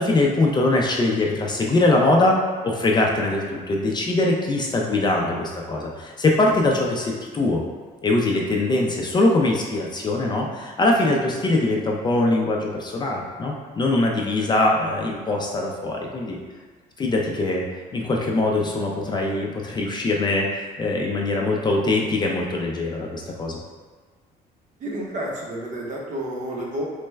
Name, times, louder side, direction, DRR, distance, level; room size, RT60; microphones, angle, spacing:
voice 1, 0.0-2.4 2.6-7.6 8.0-16.4 17.0-17.6 17.9-23.6, left 2 dB, 25° left, -1 dB, 0.4 m, -22 dB
voice 2, 24.8-26.9, right 1 dB, 45° right, -2 dB, 0.7 m, -31 dB
3.2 x 2.1 x 3.2 m, 1.4 s
cardioid pair, 110°, 17 cm